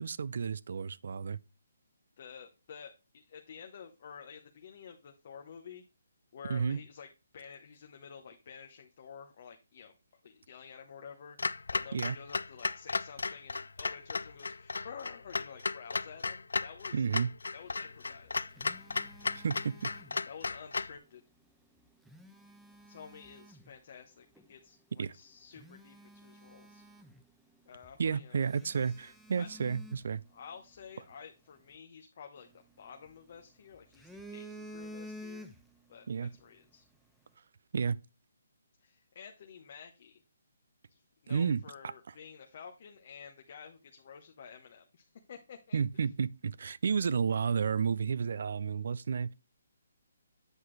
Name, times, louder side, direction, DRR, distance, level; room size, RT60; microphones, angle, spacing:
voice 1, 0.0-1.4 6.5-6.8 11.9-12.2 16.9-17.3 19.4-19.9 25.0-25.1 28.0-30.2 36.1-36.3 37.7-38.0 41.3-41.9 45.7-49.3, right 6 dB, 65° right, 0.4 m, -31 dB
voice 2, 2.2-5.8 6.3-9.9 10.2-17.1 17.5-18.4 20.3-21.2 22.9-26.8 27.7-28.4 28.7-29.5 30.3-35.5 35.9-36.9 38.8-40.2 40.9-46.1, left 6 dB, 50° left, 0.9 m, -51 dB
Clock, 11.4-21.0, left 4 dB, 85° left, 0.3 m, -35 dB
Telephone, 18.0-20.6 21.8-23.7 24.4-24.5 25.1-25.2 25.5-27.6 27.8-28.0 28.5-30.8 32.4-33.4 33.7-35.9 36.2-36.4, equal, ahead, 0.7 m, -51 dB
8.0 x 5.9 x 3.2 m
hypercardioid pair, 155°, 0 cm